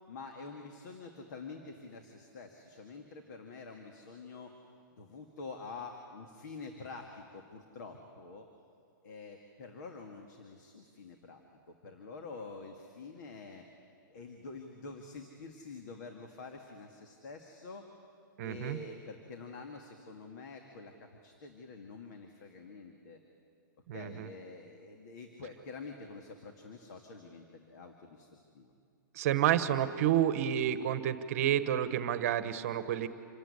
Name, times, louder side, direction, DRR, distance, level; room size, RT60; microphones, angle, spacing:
voice 1, 0.1-4.5 4.9-8.5 9.0-13.6 14.1-17.8 18.4-23.2 23.9-28.7, left 4 dB, 55° left, 4 dB, 2.0 m, -47 dB
voice 2, 18.4-18.8 23.9-24.3 29.1-33.1, right 11 dB, 45° right, 12 dB, 1.2 m, -30 dB
26.5 x 14.5 x 9.9 m, 2.4 s
hypercardioid pair, 165°, 11 cm